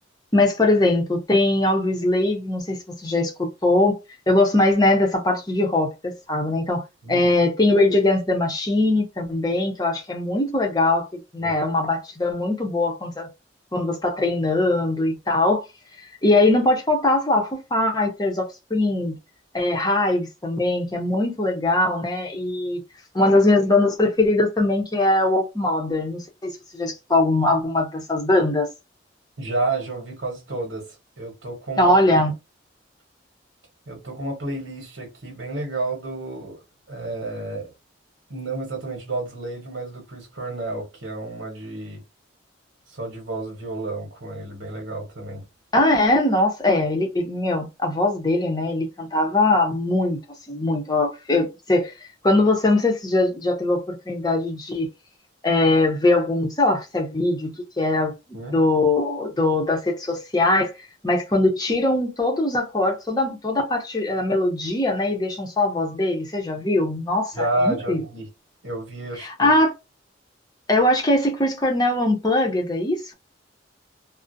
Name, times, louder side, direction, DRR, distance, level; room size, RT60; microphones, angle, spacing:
voice 1, 0.3-4.0 4.3-13.3 13.7-15.6 16.0-19.2 19.5-22.8 23.1-28.7 31.8-32.3 45.7-50.2 50.5-51.9 52.2-54.9 55.4-58.1 58.5-60.7 61.0-68.0 69.2-69.7 70.7-73.1, left 2 dB, 20° left, 0.6 m, -21 dB
voice 2, 29.4-30.9 31.2-31.9 33.9-36.6 36.9-37.7 38.3-42.0 42.9-45.5 58.3-58.6 67.3-68.3 68.6-69.6, right 2 dB, 85° right, 1.0 m, -30 dB
2.4 x 2.0 x 2.6 m
head